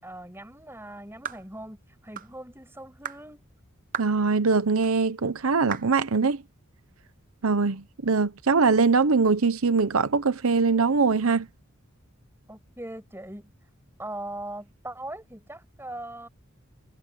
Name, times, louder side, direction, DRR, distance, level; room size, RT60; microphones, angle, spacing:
voice 1, 0.0-3.5 12.5-13.5 14.0-16.3, right 1 dB, 10° right, 6.0 m, -40 dB
sound 1, 1.2-1.5 2.2-2.3 3.0-3.2 3.9-4.2 4.8-4.9 5.7-5.9, right 8 dB, 40° right, 0.8 m, -35 dB
voice 2, 4.0-6.4 7.4-11.5, right 4 dB, 85° right, 0.9 m, -22 dB
head